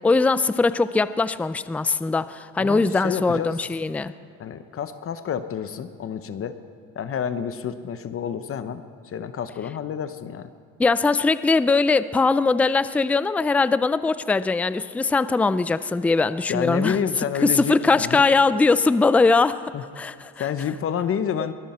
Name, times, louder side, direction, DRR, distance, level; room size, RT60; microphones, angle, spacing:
voice 1, 0.0-4.1 10.8-17.0 17.4-20.5, left 3 dB, 5° left, 14 dB, 0.3 m, -21 dB
voice 2, 2.6-3.6 4.4-6.6 7.0-10.5 16.5-18.2 19.7-19.8 20.4-21.5, left 8 dB, 45° left, 11 dB, 0.9 m, -29 dB
23.0 x 14.5 x 4.3 m, 2.4 s
cardioid pair, 115°, 31 cm